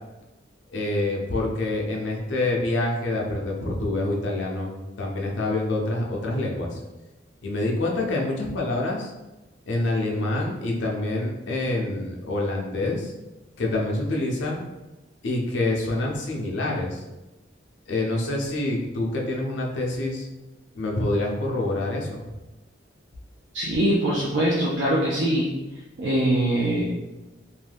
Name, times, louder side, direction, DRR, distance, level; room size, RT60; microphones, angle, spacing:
voice 1, 0.7-6.8 7.4-9.1 9.7-13.1 13.6-14.6 15.2-17.0 17.9-20.3 20.7-22.2, left 2 dB, 85° left, -1 dB, 0.6 m, -26 dB
voice 2, 23.5-25.5 26.0-26.8, right 1 dB, 80° right, -6 dB, 0.5 m, -22 dB
2.6 x 2.2 x 3.3 m, 1.1 s
head